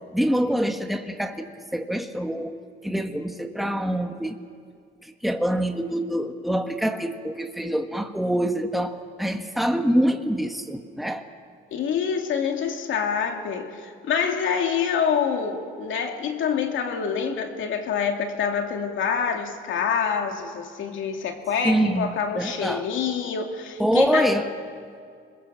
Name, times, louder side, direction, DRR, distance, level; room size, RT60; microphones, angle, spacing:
voice 1, 0.1-1.4 1.7-4.4 5.0-11.2 21.6-22.8 23.8-24.5, equal, ahead, 5 dB, 1.6 m, -25 dB
voice 2, 11.7-24.3, left 7 dB, 75° left, 4 dB, 2.5 m, -26 dB
26.5 x 21.0 x 7.5 m, 2.2 s
cardioid pair, 90°, 20 cm